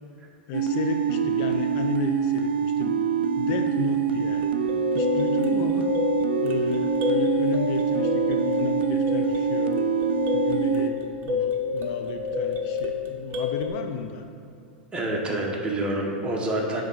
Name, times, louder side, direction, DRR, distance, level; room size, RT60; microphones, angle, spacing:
voice 1, 0.5-3.0 3.4-4.5 4.9-5.9 6.4-9.8 10.3-14.3, left 6 dB, 50° left, 5 dB, 0.6 m, -33 dB
sound 1, 0.5-10.9, right 7 dB, 90° right, 0.4 m, -25 dB
sound 2, 4.4-13.7, left 6 dB, 40° right, 0.9 m, -29 dB
voice 2, 14.9-16.8, right 1 dB, 20° right, -2 dB, 1.4 m, -27 dB
7.9 x 3.6 x 5.6 m, 2.3 s
hypercardioid pair, 110°, 6 cm